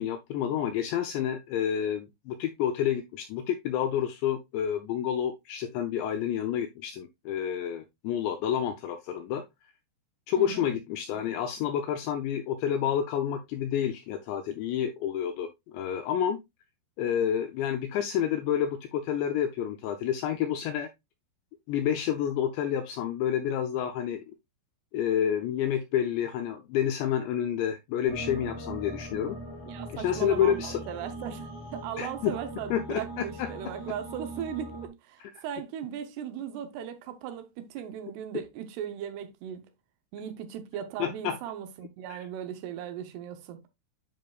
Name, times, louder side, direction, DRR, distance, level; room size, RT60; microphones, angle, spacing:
voice 1, 0.0-9.4 10.3-16.4 17.0-20.9 21.7-24.2 24.9-29.4 29.9-30.8 32.0-32.4 32.7-33.5 35.2-35.3 41.0-41.4 42.1-42.2, left 9 dB, 85° left, 2.5 m, -29 dB
voice 2, 10.4-10.7 29.7-39.7 40.1-43.6, right 9 dB, 80° right, 2.4 m, -38 dB
sound 1, 28.1-34.9, right 1 dB, 45° left, 3.1 m, -40 dB
9.4 x 5.2 x 2.3 m
omnidirectional pair, 5.7 m